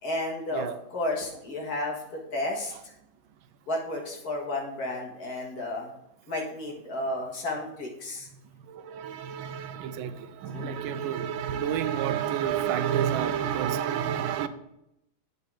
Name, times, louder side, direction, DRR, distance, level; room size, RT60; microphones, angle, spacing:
voice 1, 0.0-2.9 3.7-5.9 6.3-8.3 10.5-10.8, left 1 dB, 50° left, -1 dB, 2.0 m, -32 dB
voice 2, 8.6-14.5, right 9 dB, 85° right, 12 dB, 1.4 m, -29 dB
8.0 x 5.4 x 4.8 m, 0.83 s
omnidirectional pair, 2.2 m